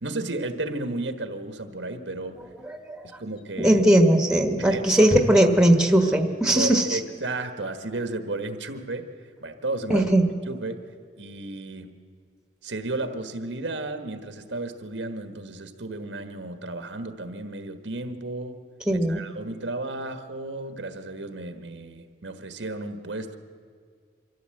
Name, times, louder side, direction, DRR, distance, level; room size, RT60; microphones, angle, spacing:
voice 1, 0.0-2.4 3.0-3.8 4.6-5.2 6.5-9.1 9.4-10.1 10.5-10.9 11.2-12.0 12.6-18.6 18.9-23.4, right 2 dB, 85° right, 8 dB, 1.4 m, -33 dB
voice 2, 2.7-3.1 3.6-7.0 9.9-10.3 18.9-19.2, right 1 dB, 5° right, 5 dB, 1.4 m, -19 dB
24.5 x 14.0 x 7.8 m, 2.1 s
head